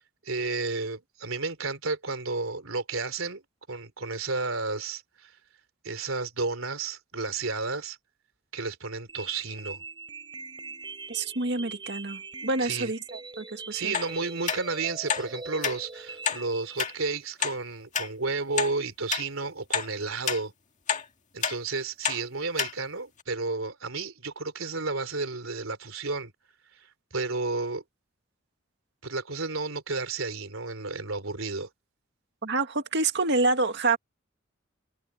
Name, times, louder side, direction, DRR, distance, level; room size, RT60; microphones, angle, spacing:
voice 1, 0.2-3.4 3.7-5.3 5.8-8.0 8.5-9.8 12.6-12.9 13.7-20.5 21.3-26.3 26.8-26.9 27.1-27.8 29.0-31.7, right 3 dB, 80° right, 3.5 m, -32 dB
sound 1, 9.1-17.1, right 4 dB, 25° right, 5.2 m, -42 dB
voice 2, 11.1-13.9 32.4-34.0, right 3 dB, 60° right, 2.0 m, -27 dB
sound 2, 13.9-14.1 14.5-14.6 15.1-15.3 15.6-15.8 16.2-16.4 16.8-16.9 17.4-17.5 17.9-18.1 18.6-18.7 19.1-19.3 19.7-19.9 20.3-20.4 20.9-21.0 21.4-21.6 22.0-22.2 22.6-22.7 23.2-23.3, left 7 dB, 40° left, 1.8 m, -28 dB
head